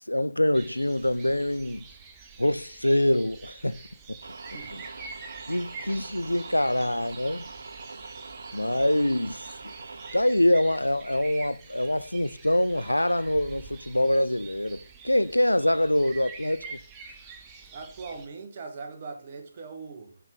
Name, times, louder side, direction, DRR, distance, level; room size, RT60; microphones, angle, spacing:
voice 1, 0.1-1.8 2.4-3.8 4.1-4.2 5.5-7.5 8.5-9.7 10.1-16.8, left 1 dB, 85° left, 0.3 m, -25 dB
sound 1, 0.5-18.3, right 5 dB, 15° right, 0.6 m, -47 dB
sound 2, 4.2-10.2, right 3 dB, 60° right, 0.4 m, -43 dB
voice 2, 4.4-4.9 17.7-20.2, right 4 dB, 35° right, 1.0 m, -41 dB
7.9 x 3.6 x 3.7 m
figure-of-eight pair, 145°, 0 cm